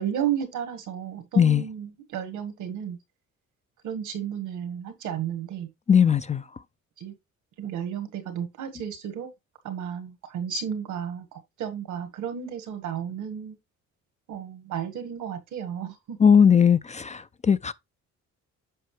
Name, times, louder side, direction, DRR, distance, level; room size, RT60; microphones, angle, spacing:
voice 1, 0.0-3.0 3.8-5.7 7.0-7.1 7.6-9.3 9.6-13.6 14.3-16.3, right 9 dB, 85° right, 1.8 m, -33 dB
voice 2, 5.9-6.4 16.2-17.2 17.5-17.7, left 7 dB, 25° left, 0.4 m, -18 dB
7.8 x 5.6 x 3.2 m
cardioid pair, 90°, 30 cm